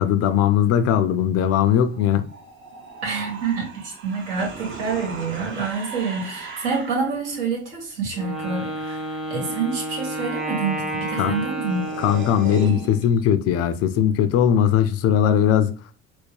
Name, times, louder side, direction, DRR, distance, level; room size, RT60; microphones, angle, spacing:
voice 1, 0.0-2.3 11.2-11.4 12.0-15.7, left 9 dB, 50° left, 0.5 m, -19 dB
sound 1, 1.5-7.2 11.1-11.2 11.3-13.4, right 4 dB, 40° right, 0.9 m, -38 dB
voice 2, 3.0-11.8, right 5 dB, 70° right, 1.8 m, -27 dB
Wind instrument woodwind instrument, 8.1-13.0, right 1 dB, ahead, 0.7 m, -31 dB
4.4 x 2.1 x 3.1 m
hypercardioid pair, 85°, 32 cm